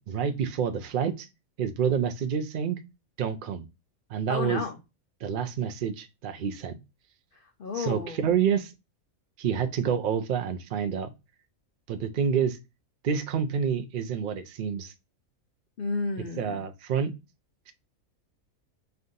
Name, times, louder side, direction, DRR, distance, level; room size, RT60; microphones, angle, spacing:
voice 1, 0.1-1.3 1.6-2.8 3.2-3.7 4.1-4.6 5.2-6.8 7.7-8.7 9.4-11.1 11.9-12.6 13.0-14.9 16.4-17.1 17.7-17.8, right 7 dB, 70° right, 0.4 m, -28 dB
voice 2, 4.3-4.7 7.3-8.2 15.8-16.6, left 4 dB, 55° left, 0.6 m, -32 dB
3.4 x 2.6 x 3.7 m
omnidirectional pair, 1.5 m